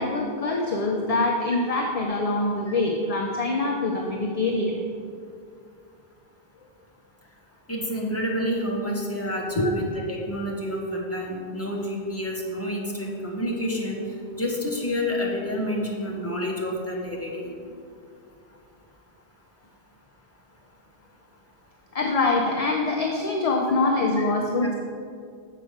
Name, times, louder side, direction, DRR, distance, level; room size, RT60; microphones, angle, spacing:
voice 1, 0.0-4.8 9.6-9.7 21.9-24.7, left 2 dB, 40° left, 0 dB, 0.7 m, -24 dB
voice 2, 7.7-14.0 14.3-17.5, equal, 15° left, -3 dB, 1.3 m, -29 dB
7.4 x 5.0 x 6.4 m, 2.3 s
omnidirectional pair, 1.0 m